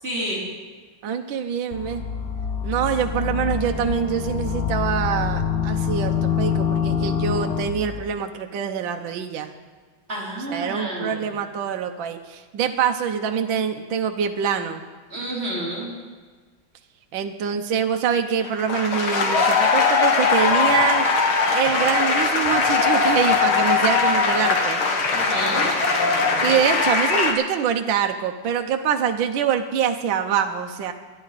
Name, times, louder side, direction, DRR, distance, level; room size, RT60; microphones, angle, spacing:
voice 1, 0.0-0.4 10.1-11.2 15.1-15.9 25.1-25.7, right 1 dB, 30° right, -6 dB, 4.0 m, -29 dB
voice 2, 1.0-2.0 2.6-9.5 10.5-14.8 17.1-21.1 21.5-24.8 26.4-30.9, right 8 dB, 70° right, 5 dB, 1.5 m, -25 dB
sound 1, 1.7-8.0, left 7 dB, 45° left, 0.8 m, -25 dB
sound 2, 18.4-27.3, left 4 dB, 80° left, 2.4 m, -20 dB
25.0 x 10.5 x 4.1 m, 1.4 s
omnidirectional pair, 2.3 m